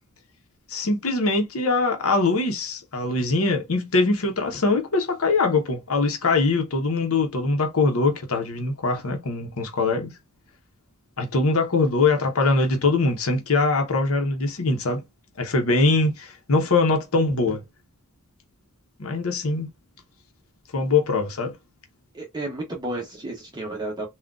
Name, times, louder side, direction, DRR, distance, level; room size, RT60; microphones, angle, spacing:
voice 1, 0.7-10.1 11.2-15.0 15.4-17.6 19.0-19.7 20.7-21.5, left 3 dB, 70° left, 0.9 m, -22 dB
voice 2, 22.1-24.1, right 2 dB, 20° right, 0.8 m, -32 dB
3.7 x 2.4 x 2.3 m
head